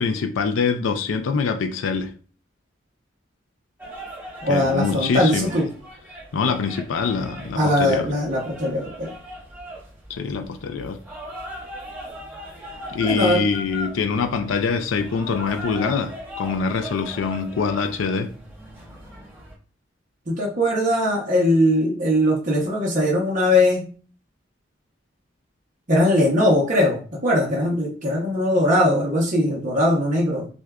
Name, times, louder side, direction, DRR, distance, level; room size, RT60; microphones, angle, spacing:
voice 1, 0.0-2.1 4.5-5.6 6.3-8.1 10.1-11.0 12.9-18.3, left 5 dB, 80° left, 0.4 m, -24 dB
sound 1, 3.8-19.5, equal, 10° right, 0.9 m, -39 dB
voice 2, 4.4-5.7 7.6-9.1 13.0-13.4 20.3-23.9 25.9-30.5, left 1 dB, 40° right, 0.9 m, -20 dB
6.1 x 2.3 x 2.3 m
head